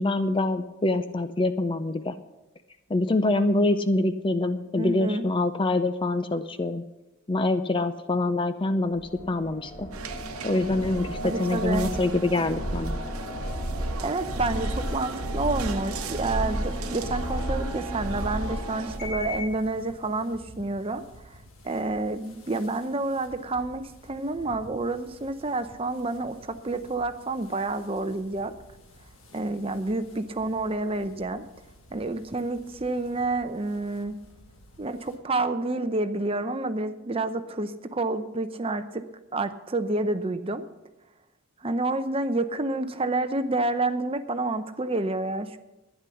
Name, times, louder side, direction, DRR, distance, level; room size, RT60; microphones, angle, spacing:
voice 1, 0.0-2.2 2.9-6.8 7.3-9.0 9.3-9.9 10.4-13.0, left 2 dB, 25° left, 11 dB, 0.5 m, -25 dB
voice 2, 4.8-5.3 11.2-11.9 14.0-21.0 21.6-28.5 29.3-31.4 31.9-34.2 34.8-39.0 39.3-40.7 41.6-45.6, right 2 dB, 25° right, 10 dB, 0.7 m, -29 dB
sound 1, 9.0-19.6, equal, 45° left, 4.0 m, -32 dB
sound 2, 9.9-19.0, right 6 dB, 85° right, 0.9 m, -41 dB
sound 3, 15.5-35.2, left 1 dB, 70° left, 2.0 m, -52 dB
12.0 x 10.0 x 7.0 m, 1.0 s
head